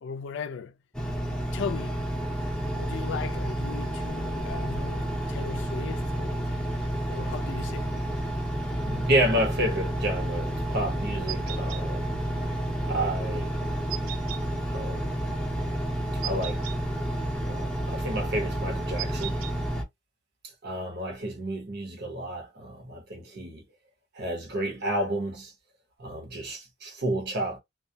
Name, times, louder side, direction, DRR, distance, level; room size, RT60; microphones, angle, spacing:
voice 1, 0.0-0.8 1.5-2.0 2.8-6.5 7.1-7.9, left 6 dB, 70° left, 0.4 m, -37 dB
Engine, 0.9-19.8, right 1 dB, 5° left, 0.6 m, -30 dB
voice 2, 8.6-12.2 12.9-13.5 14.7-15.2 16.2-16.6 17.5-19.4 20.6-23.6 24.2-25.5 26.0-27.6, right 1 dB, 60° right, 0.9 m, -30 dB
sound 1, 11.3-11.8 13.9-14.4 16.2-16.8 19.0-19.5, right 15 dB, 90° right, 0.3 m, -36 dB
2.3 x 2.1 x 2.7 m
head